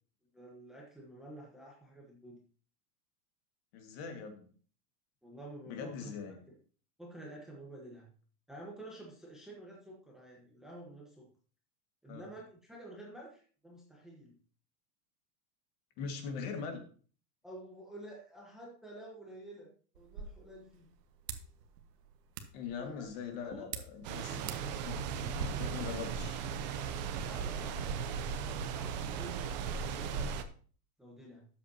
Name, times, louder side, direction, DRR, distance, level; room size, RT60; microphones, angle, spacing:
voice 1, 0.3-2.4 5.2-6.2 6.5-6.6 7.0-8.1 8.5-11.3 12.0-14.4 17.4-20.9 22.8-23.1 23.5-23.7 24.2-25.9 26.9-30.4 31.0-31.5, right 1 dB, ahead, -3 dB, 1.1 m, -50 dB
voice 2, 3.7-4.5 5.7-6.4 12.1-12.3 16.0-16.8 22.5-24.5 24.8-24.9 25.3-26.4, left 6 dB, 40° left, 5 dB, 1.8 m, -41 dB
sound 1, 19.9-25.5, right 7 dB, 80° right, 1.5 m, -47 dB
sound 2, 24.0-30.4, right 6 dB, 30° right, 0.5 m, -37 dB
13.0 x 8.2 x 2.8 m, 0.42 s
supercardioid pair, 170°, 47 cm